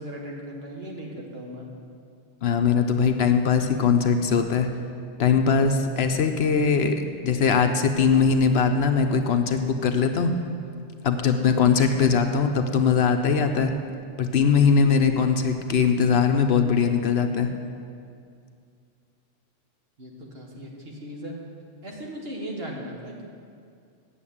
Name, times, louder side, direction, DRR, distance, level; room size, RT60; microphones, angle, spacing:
voice 1, 0.0-1.7 20.0-21.3 21.8-23.3, equal, 55° right, -1 dB, 1.8 m, -37 dB
voice 2, 2.4-4.7 5.2-7.0 7.2-10.3 11.0-13.7 14.2-17.5, left 6 dB, 65° left, 6 dB, 0.9 m, -21 dB
8.8 x 7.1 x 8.5 m, 2.3 s
omnidirectional pair, 1.2 m